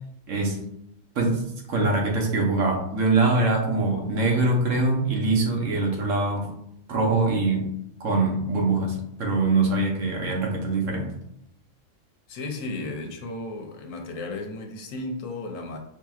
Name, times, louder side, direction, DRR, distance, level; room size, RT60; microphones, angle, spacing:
voice 1, 0.3-0.6 1.2-1.4 1.7-6.5 6.9-7.7 8.0-11.1, right 3 dB, 80° right, 0 dB, 1.3 m, -23 dB
voice 2, 12.3-15.8, left 2 dB, 90° left, 3 dB, 1.1 m, -34 dB
5.2 x 2.8 x 2.4 m, 0.76 s
omnidirectional pair, 1.3 m